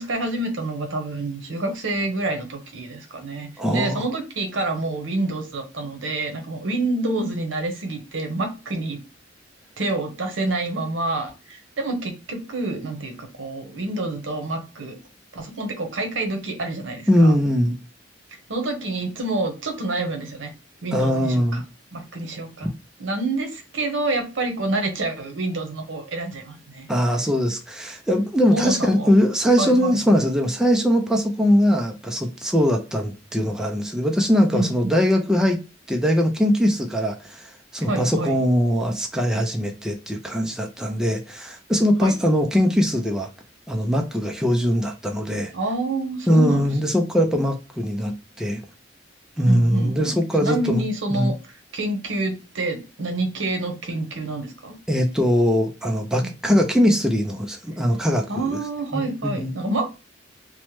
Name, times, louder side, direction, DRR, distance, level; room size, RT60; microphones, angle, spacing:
voice 1, 0.0-9.0 9.8-15.0 15.3-17.4 18.5-20.5 20.8-21.6 21.9-22.7 23.0-26.9 28.5-29.1 29.6-30.2 34.5-35.0 37.9-38.4 42.0-42.2 45.5-46.7 49.5-54.8 56.2-56.6 58.3-60.1, right 2 dB, 75° right, 0.8 m, -28 dB
voice 2, 3.6-4.0 17.1-17.8 20.9-21.6 26.9-35.6 35.9-43.3 43.7-45.5 46.3-48.6 49.4-50.8 51.1-51.3 54.9-58.6 58.9-59.5, equal, 5° right, 0.4 m, -21 dB
2.9 x 2.1 x 3.0 m
head